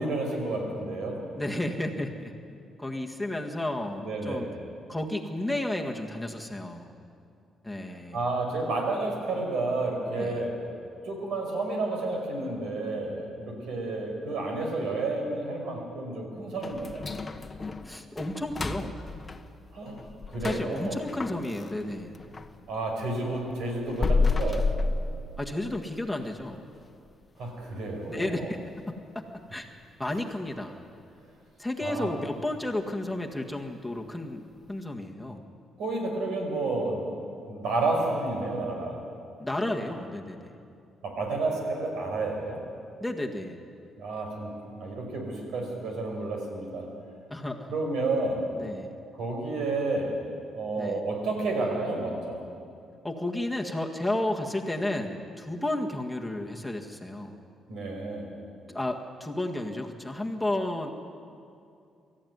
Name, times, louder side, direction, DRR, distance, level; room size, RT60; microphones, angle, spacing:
voice 1, 0.0-1.3 4.0-4.5 8.1-10.6 11.0-17.1 19.7-21.0 22.7-24.8 27.4-28.5 31.8-32.1 35.8-37.1 37.5-39.0 41.0-42.7 44.0-44.5 44.8-46.9 47.7-48.5 49.2-50.2 50.5-52.4 57.7-58.3, right 2 dB, 80° right, 2 dB, 5.5 m, -31 dB
voice 2, 1.3-4.5 4.9-6.9 7.6-8.2 10.2-10.5 17.8-19.0 20.4-22.2 25.4-26.7 28.1-28.9 29.5-29.7 30.0-30.8 31.6-35.5 39.4-40.6 43.0-43.6 47.3-47.7 48.6-48.9 50.8-51.0 53.0-57.4 58.7-60.9, left 1 dB, 5° left, 1 dB, 1.8 m, -32 dB
sound 1, 16.6-22.6 22.9-25.8 26.1-26.2 26.7-26.8 27.4-27.7 28.0-28.1 28.6-28.7, left 3 dB, 25° left, 1.2 m, -31 dB
24.0 x 14.0 x 9.5 m, 2.5 s
cardioid pair, 90°, 0 cm